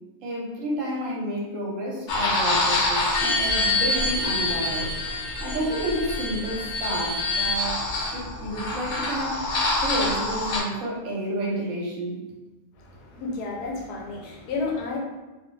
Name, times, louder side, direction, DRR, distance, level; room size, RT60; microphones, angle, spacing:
voice 1, 0.2-4.9 5.4-7.8 8.1-9.4 9.8-12.2, right 1 dB, 65° right, -4 dB, 0.9 m, -30 dB
sound 1, 2.1-10.6, left 2 dB, 65° left, 0.8 m, -26 dB
voice 2, 12.7-15.0, left 3 dB, 85° left, -1 dB, 1.2 m, -31 dB
2.6 x 2.0 x 3.1 m, 1.1 s
omnidirectional pair, 1.7 m